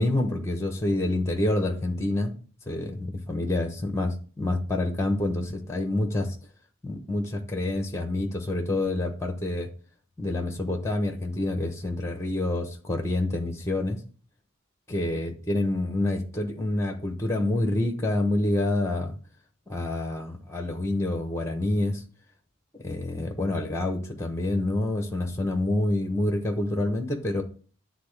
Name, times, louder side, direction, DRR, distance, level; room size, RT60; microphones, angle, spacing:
voice 1, 0.0-2.3 2.7-6.4 6.8-9.7 10.2-14.0 14.9-19.2 19.7-22.0 22.8-27.4, left 1 dB, 15° left, 0.9 m, -27 dB
9.5 x 3.9 x 3.3 m
head